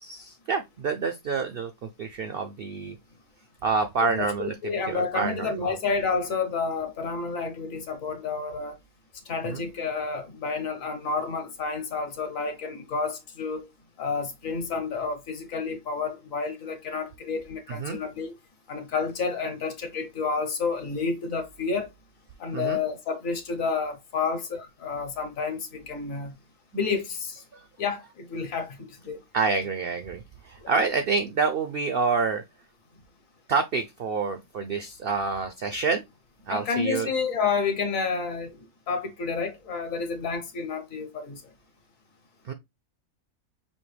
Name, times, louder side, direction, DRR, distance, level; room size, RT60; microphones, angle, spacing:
voice 1, 0.0-3.0 3.6-5.8 9.5-9.7 17.7-18.0 22.5-22.8 29.3-32.4 33.5-36.0 36.5-37.1 42.5-42.6, right 4 dB, 70° right, 0.5 m, -28 dB
voice 2, 4.1-8.7 9.3-13.7 14.0-18.3 18.7-21.9 22.4-26.3 26.7-27.4 27.8-29.2 30.6-30.7 36.5-38.6 38.9-41.4, left 5 dB, 65° left, 1.4 m, -30 dB
5.4 x 2.7 x 3.2 m
omnidirectional pair, 1.5 m